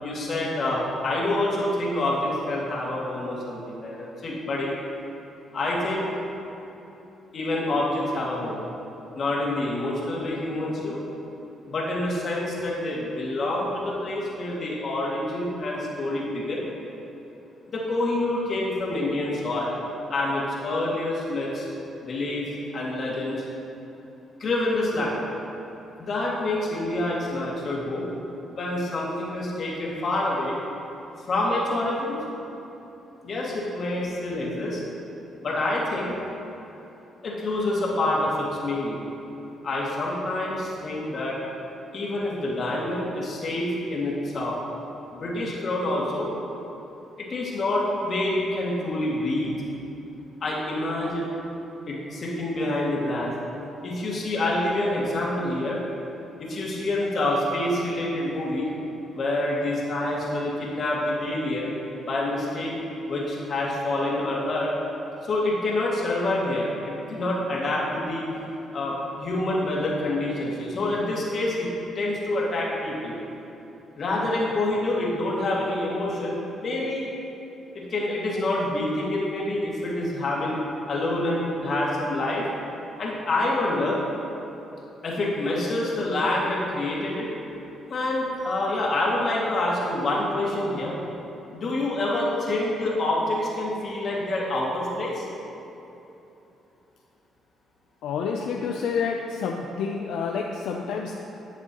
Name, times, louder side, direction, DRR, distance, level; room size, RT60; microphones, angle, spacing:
voice 1, 0.0-4.7 5.5-6.1 7.3-8.6 9.2-11.0 11.7-16.7 17.7-19.7 20.1-21.7 22.0-22.5 22.7-23.4 24.4-25.1 26.1-28.1 28.5-30.6 31.3-32.2 33.2-34.8 35.4-36.2 37.2-39.0 39.6-41.4 41.9-44.6 45.1-46.3 47.2-49.5 50.4-51.3 51.9-53.3 53.8-55.8 56.4-58.7 59.1-61.7 62.0-62.7 63.1-64.7 65.2-68.2 68.7-71.7 72.0-73.2 74.0-77.1 77.7-80.6 80.9-82.4 83.0-84.0 85.0-87.3 87.9-91.0 91.5-95.2, left 1 dB, 50° left, -4 dB, 2.0 m, -27 dB
voice 2, 98.0-101.1, left 5 dB, 80° left, 1 dB, 0.5 m, -28 dB
11.5 x 7.3 x 2.9 m, 3.0 s
cardioid pair, 90°, 0 cm